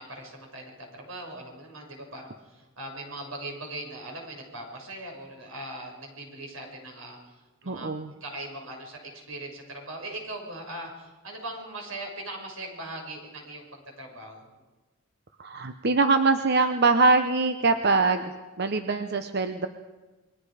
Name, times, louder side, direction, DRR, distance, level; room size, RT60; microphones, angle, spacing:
voice 1, 0.0-7.2 7.6-7.9 8.2-14.4, right 1 dB, 90° right, 2 dB, 6.4 m, -40 dB
voice 2, 7.7-8.1 15.4-18.3 18.6-19.7, right 3 dB, 55° right, 7 dB, 0.9 m, -23 dB
28.5 x 22.5 x 5.1 m, 1.2 s
head